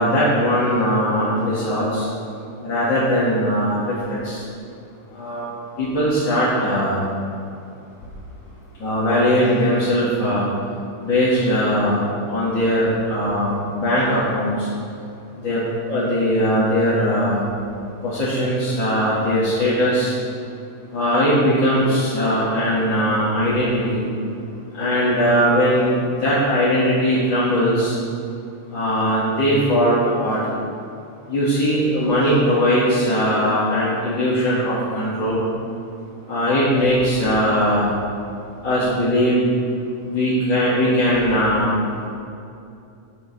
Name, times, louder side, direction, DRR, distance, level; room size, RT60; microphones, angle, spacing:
voice 1, 0.0-2.1 2.6-4.4 5.1-5.4 5.8-7.1 8.8-10.4 11.0-12.0 12.3-14.7 15.4-17.4 18.0-20.1 20.9-24.1 24.7-28.0 28.7-30.4 31.3-35.4 36.3-37.9 38.6-39.4 40.0-41.7, equal, 40° left, -10 dB, 2.5 m, -20 dB
18.5 x 7.0 x 4.2 m, 2.6 s
omnidirectional pair, 3.6 m